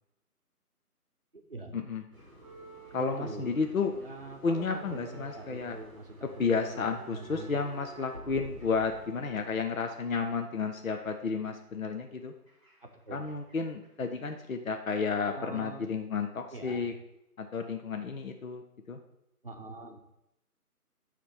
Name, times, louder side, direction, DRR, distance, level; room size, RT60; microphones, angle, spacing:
voice 1, 1.7-2.0 2.9-3.9 4.4-5.8 6.4-12.3 13.1-16.9 17.4-18.6 18.9-19.0, left 5 dB, 60° left, 5 dB, 0.7 m, -32 dB
sound 1, 2.1-11.6 12.5-13.6 13.8-14.1 15.0-15.1, right 2 dB, 20° right, 1.4 m, -50 dB
voice 2, 2.9-3.6 4.0-6.8 7.1-7.5 12.8-13.2 15.3-15.8 16.5-16.9 19.4-20.0, right 2 dB, 35° right, 2 dB, 0.9 m, -44 dB
9.7 x 3.4 x 5.7 m, 0.86 s
figure-of-eight pair, 170°, 46 cm